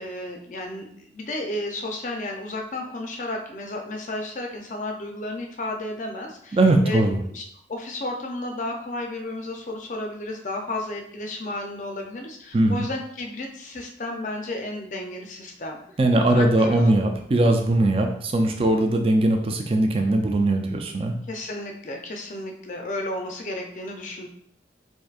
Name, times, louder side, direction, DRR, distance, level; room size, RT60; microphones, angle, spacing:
voice 1, 0.0-7.4 7.7-15.8 16.2-16.9 21.3-24.3, left 1 dB, 45° left, 2 dB, 0.5 m, -33 dB
voice 2, 6.5-7.2 12.5-12.9 16.0-21.2, right 2 dB, 30° right, 3 dB, 0.4 m, -20 dB
4.6 x 2.6 x 2.4 m, 0.66 s
head